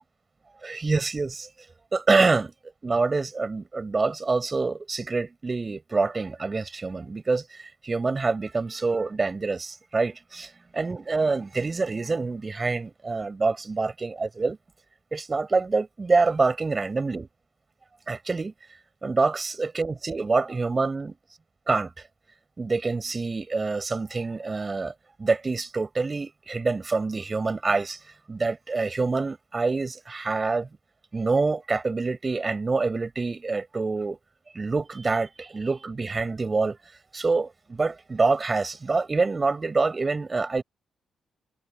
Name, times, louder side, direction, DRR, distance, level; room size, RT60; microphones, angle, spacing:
voice 1, 0.6-1.5 1.9-2.5 2.8-14.6 15.1-17.3 18.1-18.5 19.0-21.2 21.7-21.9 22.6-24.9 25.2-28.0 28.3-30.7 31.1-34.2 34.5-36.8 37.1-40.6, right 3 dB, 30° right, 5.8 m, -26 dB
cardioid pair, 85°, 0 cm